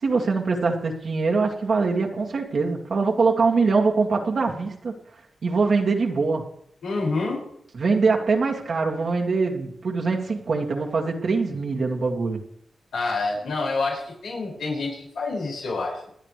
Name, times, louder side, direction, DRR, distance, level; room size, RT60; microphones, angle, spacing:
voice 1, 0.0-5.0 5.4-6.5 7.7-12.4, right 4 dB, 70° right, 0 dB, 2.2 m, -23 dB
voice 2, 6.8-7.4 12.9-16.1, left 3 dB, 85° left, -4 dB, 5.9 m, -27 dB
28.0 x 10.0 x 3.3 m, 0.71 s
cardioid pair, 45°, 0 cm